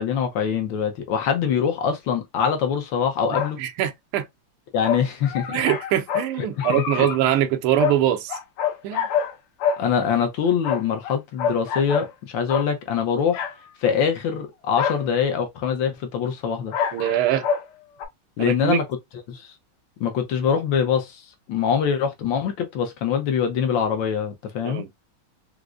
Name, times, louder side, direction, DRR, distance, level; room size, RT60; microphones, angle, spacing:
voice 1, 0.0-3.6 4.7-5.6 6.4-7.1 9.8-13.5 13.8-16.7 18.4-18.8 19.3-19.6 20.0-24.8, left 7 dB, 75° left, 1.3 m, -24 dB
sound 1, 3.3-3.5 4.8-6.3 6.6-7.2 7.8-8.0 8.3-9.3 9.6-11.1 11.4-12.1 12.5-12.7 13.3-13.5 14.1-14.2 14.8-15.1 16.7-17.7 18.0-18.1, left 7 dB, 90° left, 1.6 m, -26 dB
voice 2, 3.6-4.2 5.5-8.4 8.8-9.1 16.9-17.5 18.4-18.8 24.6-24.9, right 12 dB, 85° right, 1.5 m, -23 dB
4.9 x 2.0 x 2.4 m
omnidirectional pair, 2.4 m